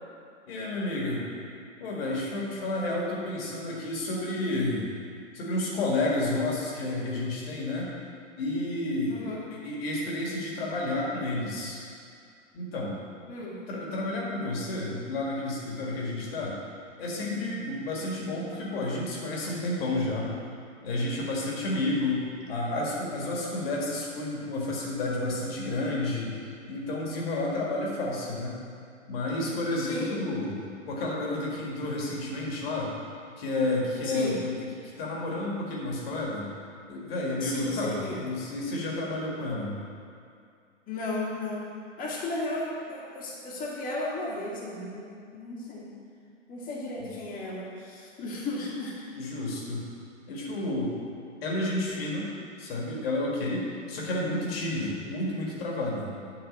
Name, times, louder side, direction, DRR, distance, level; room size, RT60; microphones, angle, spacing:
voice 1, 0.5-1.3 1.8-4.9 5.3-7.9 8.4-11.8 12.5-13.0 13.7-16.5 17.0-20.3 20.8-28.6 29.1-30.6 30.9-32.9 33.4-34.5 34.8-36.5 36.9-39.8 49.1-49.8 50.3-51.0 51.4-52.3 52.6-56.1, left 2 dB, 50° left, -3 dB, 2.0 m, -31 dB
voice 2, 9.1-9.4 13.3-13.6 29.8-30.2 34.0-34.4 37.4-38.2 40.9-41.7 42.0-45.9 46.5-49.2, left 2 dB, 20° left, -5 dB, 2.0 m, -35 dB
8.6 x 4.2 x 6.6 m, 2.4 s
figure-of-eight pair, 115°, 38 cm